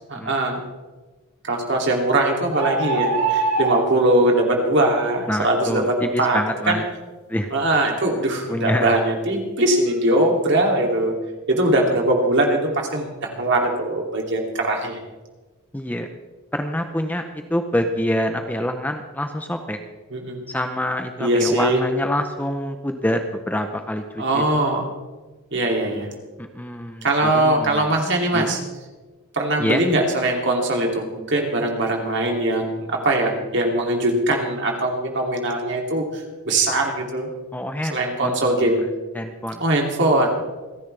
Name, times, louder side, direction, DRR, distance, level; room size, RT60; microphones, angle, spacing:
voice 1, 0.1-0.6 1.4-5.8 6.2-6.4 6.7-6.8 7.5-11.1 11.5-15.0 20.1-20.4 21.2-21.8 24.2-24.9 25.5-26.1 27.0-28.6 29.3-37.3 37.9-38.9 39.6-40.3, right 1 dB, 55° right, 1 dB, 2.7 m, -21 dB
sound 1, 2.5-3.9, right 3 dB, 85° right, 1.7 m, -22 dB
voice 2, 5.3-6.8 7.3-7.5 8.5-9.0 15.7-16.1 16.5-19.8 20.5-24.7 26.4-28.5 29.6-29.8 37.5-38.9 39.1-39.6, equal, 5° left, 6 dB, 0.6 m, -26 dB
27.5 x 10.5 x 3.4 m, 1.2 s
head